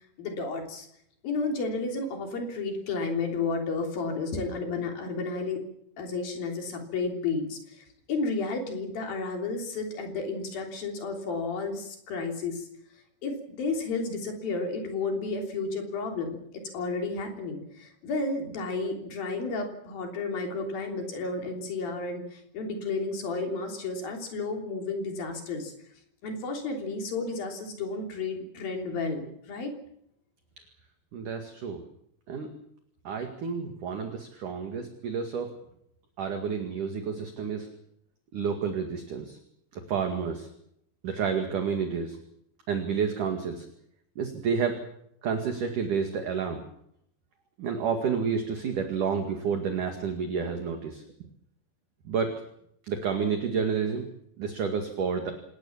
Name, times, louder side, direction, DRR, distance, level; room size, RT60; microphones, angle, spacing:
voice 1, 0.2-0.9 1.2-5.6 6.0-12.7 13.2-25.7 26.2-29.7, left 3 dB, 55° left, 3 dB, 4.9 m, -32 dB
voice 2, 31.1-31.8 32.3-32.5 33.0-35.5 36.2-37.7 38.3-39.4 39.7-40.5 41.0-42.2 42.7-43.6 44.2-44.8 45.2-46.6 47.6-51.0 52.1-52.3 52.9-54.1 54.4-55.3, right 6 dB, 50° right, 5 dB, 3.1 m, -30 dB
26.5 x 19.0 x 7.4 m, 0.74 s
omnidirectional pair, 5.2 m